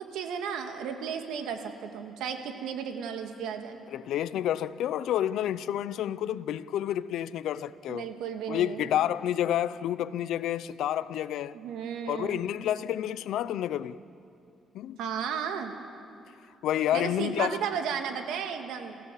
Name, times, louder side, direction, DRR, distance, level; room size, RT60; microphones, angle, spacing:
voice 1, 0.0-3.8 7.9-9.0 11.5-12.4 15.0-15.7 16.9-18.9, right 7 dB, 90° right, 1.9 m, -34 dB
voice 2, 3.9-8.1 8.5-11.6 12.1-14.0 14.7-15.0 16.6-17.6, left 11 dB, 80° left, 0.6 m, -29 dB
28.5 x 15.5 x 7.6 m
cardioid pair, 90°, 0 cm